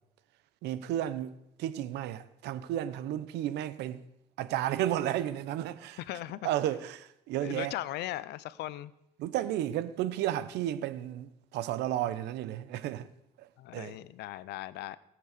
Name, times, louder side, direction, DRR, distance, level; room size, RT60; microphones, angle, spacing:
voice 1, 0.6-1.3 1.6-4.0 4.4-6.0 6.4-7.7 9.2-13.1 13.4-14.0, right 12 dB, 85° right, 0.9 m, -33 dB
voice 2, 6.0-6.5 7.4-8.9 13.6-15.0, left 15 dB, 80° left, 0.7 m, -38 dB
18.5 x 7.7 x 6.7 m
cardioid pair, 110°, 17 cm